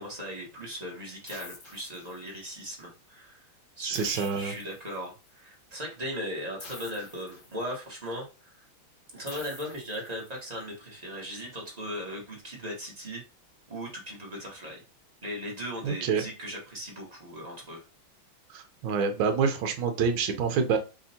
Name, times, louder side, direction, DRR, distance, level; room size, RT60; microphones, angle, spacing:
voice 1, 0.0-3.4 3.8-8.5 9.1-13.2 13.7-14.8 15.2-17.8, equal, 25° right, -2 dB, 1.1 m, -38 dB
sound 1, 1.3-2.6 3.9-5.3 6.6-8.0 9.3-10.6, left 3 dB, 70° left, 0.5 m, -48 dB
voice 2, 3.8-4.5 15.8-16.2 18.5-20.8, right 6 dB, 75° right, 7 dB, 1.5 m, -27 dB
5.4 x 2.8 x 2.8 m, 0.31 s
omnidirectional pair, 2.3 m